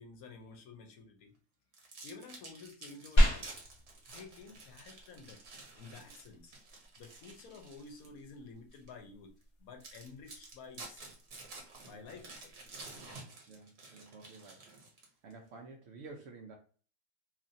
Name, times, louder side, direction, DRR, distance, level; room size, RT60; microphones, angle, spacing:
voice 1, 0.0-1.3 2.0-3.5 4.1-5.4 5.8-6.5 7.0-9.3 9.6-11.1 11.8-12.5 13.0-13.2, left 4 dB, 70° left, 5 dB, 1.0 m, -51 dB
sound 1, 1.7-8.2 8.7-8.9 9.4-9.5 9.8-15.3, right 3 dB, 50° right, 0.9 m, -51 dB
sound 2, 3.2-13.2, equal, 45° left, 0.3 m, -36 dB
voice 2, 13.5-14.7 15.2-16.5, right 3 dB, 75° right, 1 dB, 0.6 m, -51 dB
3.0 x 2.4 x 2.5 m, 0.41 s
omnidirectional pair, 1.7 m